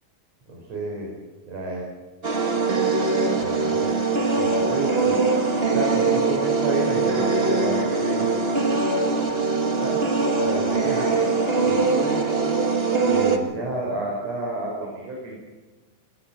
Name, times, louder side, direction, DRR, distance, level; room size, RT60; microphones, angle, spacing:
voice 1, 0.5-1.1 1.5-1.8 3.4-4.0 4.4-5.2 5.7-8.4 9.8-10.0 10.4-11.1 11.7-12.2 13.1-15.4, right 2 dB, 45° right, -2 dB, 5.9 m, -30 dB
sound 1, 2.2-13.4, right 3 dB, 25° right, 1.4 m, -22 dB
25.0 x 22.0 x 5.9 m, 1.2 s
omnidirectional pair, 4.1 m